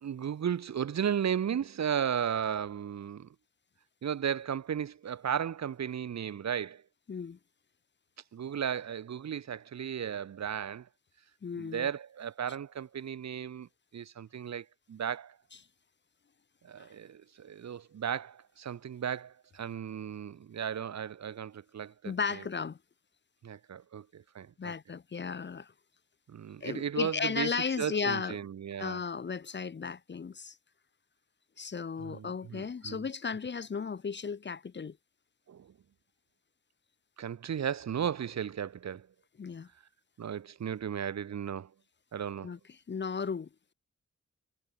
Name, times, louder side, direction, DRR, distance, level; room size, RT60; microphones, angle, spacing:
voice 1, 0.0-3.3 4.0-6.8 8.3-10.9 11.6-15.4 16.6-22.4 23.4-24.7 26.3-29.0 32.0-33.1 35.5-35.7 37.2-39.1 40.2-41.7 42.1-42.5, right 8 dB, 60° right, 0.5 m, -35 dB
voice 2, 7.1-7.4 11.4-11.9 22.0-22.8 24.6-25.7 26.6-28.4 28.8-30.6 31.6-35.0 39.4-39.7 42.4-42.6 42.9-43.5, left 5 dB, 35° left, 0.4 m, -35 dB
wide cardioid pair, 95°, 31 cm